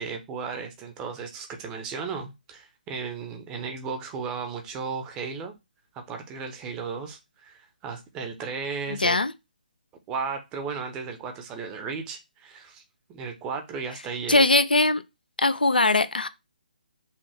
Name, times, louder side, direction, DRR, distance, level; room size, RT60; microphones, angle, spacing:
voice 1, 0.0-5.5 6.1-9.2 10.1-12.8 13.1-14.5, right 5 dB, 15° right, 0.7 m, -35 dB
voice 2, 8.9-9.3 14.3-15.0 15.4-16.3, left 2 dB, 75° left, 0.5 m, -21 dB
5.5 x 2.4 x 3.4 m
figure-of-eight pair, 140°, 5 cm